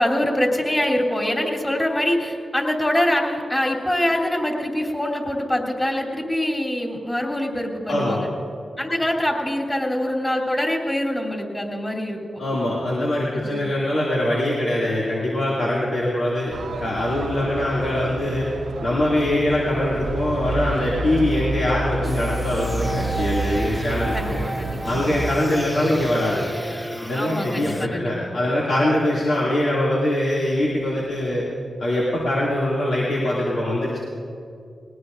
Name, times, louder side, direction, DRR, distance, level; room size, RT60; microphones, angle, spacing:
voice 1, 0.0-8.3 8.8-12.4 13.3-13.7 24.1-25.2 27.1-28.3, left 1 dB, 20° left, 0 dB, 3.0 m, -24 dB
voice 2, 7.9-8.2 12.4-16.5 16.8-18.5 18.8-24.4 24.8-26.4 27.0-31.4 31.8-34.0, left 1 dB, 75° left, -7 dB, 2.4 m, -23 dB
sound 1, 16.5-25.3, right 2 dB, 85° right, 0.9 m, -29 dB
sound 2, 22.0-27.9, equal, 5° left, 0.8 m, -32 dB
20.5 x 18.5 x 2.6 m, 2.4 s
cardioid pair, 55°, 0 cm